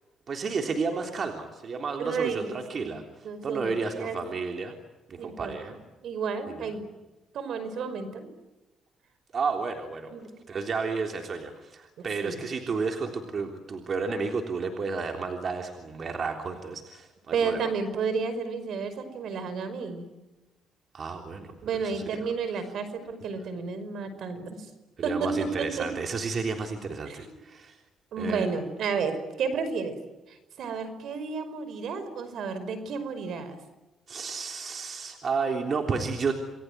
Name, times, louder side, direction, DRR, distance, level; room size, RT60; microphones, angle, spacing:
voice 1, 0.3-3.0 3.4-4.8 5.1-5.8 6.5-6.7 9.3-10.1 10.5-17.6 20.9-21.5 21.8-22.3 25.0-27.8 28.2-28.5 34.1-36.3, right 4 dB, 50° right, 4 dB, 3.5 m, -32 dB
voice 2, 2.0-3.0 3.2-4.2 5.2-5.7 6.0-6.8 7.3-8.3 10.1-10.3 12.0-12.5 17.3-20.1 21.6-24.7 25.0-25.9 27.1-27.4 28.1-30.0 30.3-33.6, right 5 dB, 70° right, 11 dB, 5.4 m, -32 dB
28.5 x 21.0 x 9.4 m, 1.1 s
cardioid pair, 90°, 0 cm